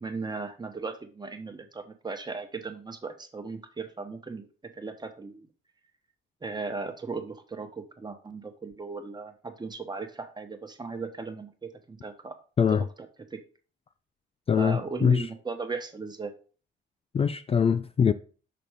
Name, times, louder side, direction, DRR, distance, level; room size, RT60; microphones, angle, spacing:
voice 1, 0.0-4.5 4.8-5.5 6.4-12.4 13.3-13.4 14.6-16.3, right 4 dB, 20° right, 1.1 m, -37 dB
voice 2, 12.6-12.9 14.5-15.3 17.1-18.1, left 7 dB, 30° left, 0.3 m, -23 dB
6.0 x 4.1 x 5.0 m
cardioid pair, 90°, 20 cm